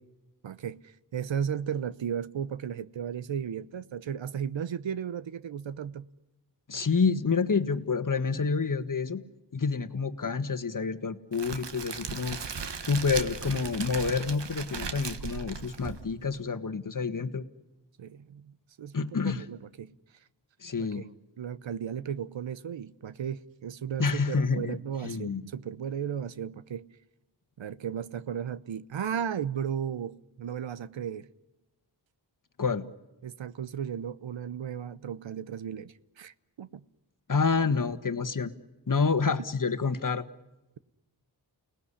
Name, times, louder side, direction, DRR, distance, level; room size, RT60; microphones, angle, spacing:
voice 1, 0.4-6.1 18.0-19.9 20.8-21.0 21.4-27.0 27.6-31.3 33.2-36.8, right 8 dB, 90° right, 0.9 m, -35 dB
voice 2, 6.7-9.2 9.5-12.4 12.8-17.4 18.9-19.4 20.6-21.1 24.0-24.7 25.0-25.5 32.6-32.9 37.3-38.5 38.9-40.2, left 5 dB, 45° left, 1.5 m, -28 dB
Crackle, 11.3-16.4, right 5 dB, 70° right, 1.6 m, -37 dB
29.5 x 18.5 x 9.9 m
wide cardioid pair, 65°, 44 cm